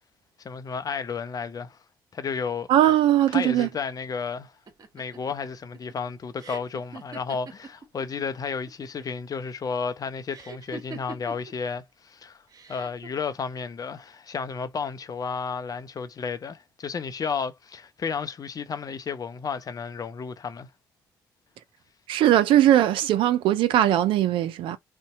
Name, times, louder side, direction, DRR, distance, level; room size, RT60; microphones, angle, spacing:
voice 1, 0.4-1.8 2.1-2.7 3.3-4.5 4.9-12.4 12.7-20.7, left 5 dB, 45° left, 0.6 m, -32 dB
voice 2, 2.7-3.7 22.1-24.8, right 12 dB, 70° right, 0.4 m, -20 dB
sound 1, 4.7-8.2 8.5-9.2 10.3-11.5 12.5-13.1, right 3 dB, 45° right, 0.9 m, -42 dB
2.7 x 2.2 x 4.0 m
hypercardioid pair, 40°, 9 cm